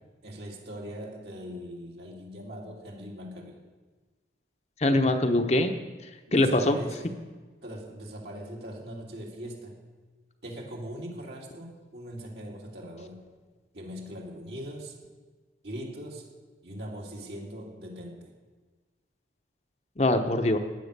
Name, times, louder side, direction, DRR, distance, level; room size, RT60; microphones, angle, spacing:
voice 1, 0.2-3.6 6.3-7.2 7.6-9.8 10.4-13.2 13.7-15.0 15.6-16.2 16.6-18.3, equal, 65° right, -2 dB, 3.1 m, -40 dB
voice 2, 4.8-5.7 6.3-6.8 20.0-20.6, left 1 dB, 35° left, 5 dB, 0.9 m, -23 dB
15.5 x 10.5 x 6.8 m, 1.3 s
head